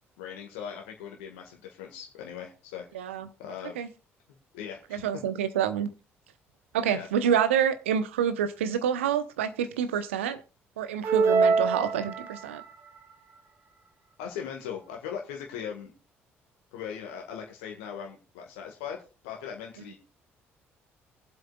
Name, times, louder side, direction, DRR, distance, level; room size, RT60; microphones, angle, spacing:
voice 1, 0.2-3.1 3.4-3.9 4.5-5.0 6.9-7.1 14.2-15.9 16.7-19.9, left 8 dB, 75° left, 1.6 m, -39 dB
voice 2, 2.9-3.3 3.8-3.9 4.9-5.9 6.7-10.4 10.8-12.6, right 8 dB, 85° right, 0.8 m, -27 dB
sound 1, 11.0-12.7, right 4 dB, 40° right, 1.7 m, -24 dB
23.0 x 7.8 x 2.3 m
hypercardioid pair, 50°, 7 cm